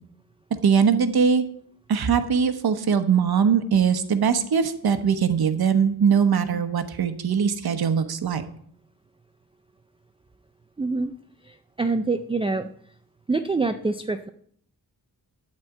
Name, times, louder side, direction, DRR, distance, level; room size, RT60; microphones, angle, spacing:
voice 1, 0.5-1.4 1.9-8.4, right 6 dB, 70° right, 9 dB, 1.0 m, -21 dB
voice 2, 10.8-11.1 11.4-12.7 13.3-14.3, right 3 dB, 15° right, 8 dB, 0.4 m, -25 dB
12.0 x 4.4 x 8.1 m, 0.64 s
wide cardioid pair, 165°, 39 cm